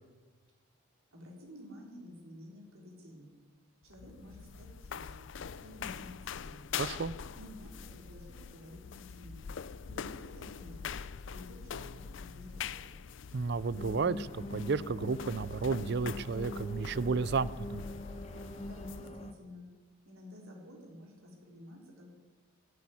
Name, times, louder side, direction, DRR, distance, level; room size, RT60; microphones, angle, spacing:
voice 1, 1.1-3.3 3.8-5.3 5.6-6.7 7.4-9.4 9.8-10.8 11.3-13.0 18.6-19.7 20.0-22.1, left 1 dB, 75° right, -1 dB, 4.3 m, -51 dB
sound 1, 3.8-19.1, left 6 dB, 60° left, 0.4 m, -44 dB
voice 2, 6.7-7.1 13.3-17.8, right 4 dB, 50° right, 19 dB, 0.5 m, -32 dB
sound 2, 13.8-19.3, left 1 dB, 30° left, 1.1 m, -43 dB
16.0 x 8.5 x 9.7 m, 1.3 s
head